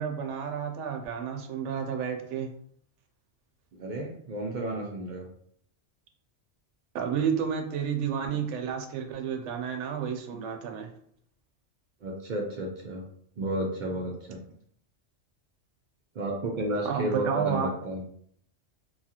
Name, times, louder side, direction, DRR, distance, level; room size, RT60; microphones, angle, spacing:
voice 1, 0.0-2.5 6.9-10.9 16.8-17.7, right 7 dB, 85° right, 4 dB, 0.9 m, -31 dB
voice 2, 3.7-5.3 12.0-13.0 13.4-14.4 16.1-18.0, right 1 dB, 60° right, -1 dB, 0.5 m, -32 dB
2.8 x 2.4 x 2.8 m, 0.64 s
omnidirectional pair, 1.2 m